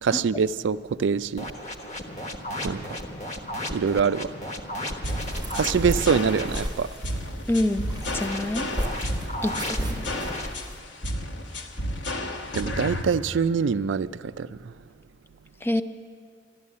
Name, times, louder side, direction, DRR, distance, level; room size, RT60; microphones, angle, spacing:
voice 1, 0.0-1.5 2.6-2.8 3.7-4.3 5.5-6.9 12.5-14.7, right 6 dB, 75° right, 0.4 m, -24 dB
sound 1, 1.4-6.6 8.0-10.5, left 1 dB, 40° left, 1.2 m, -34 dB
sound 2, 5.0-13.0, left 1 dB, 70° left, 1.2 m, -32 dB
sound 3, 5.0-10.8, right 1 dB, 20° right, 0.9 m, -36 dB
voice 2, 7.5-7.9 8.1-8.7 9.4-10.2 15.6-15.8, left 1 dB, 10° left, 0.4 m, -26 dB
13.0 x 12.0 x 8.4 m
head